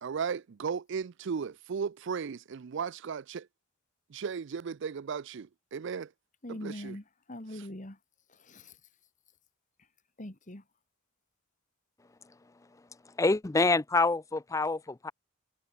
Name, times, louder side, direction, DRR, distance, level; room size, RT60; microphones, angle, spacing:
voice 1, 0.0-3.5 4.1-6.1 6.5-7.0, right 6 dB, 60° right, 0.4 m, -36 dB
voice 2, 6.4-8.0 8.3-8.8 10.2-10.6, left 1 dB, 40° left, 2.4 m, -42 dB
voice 3, 13.2-15.1, left 3 dB, 15° left, 0.4 m, -26 dB
head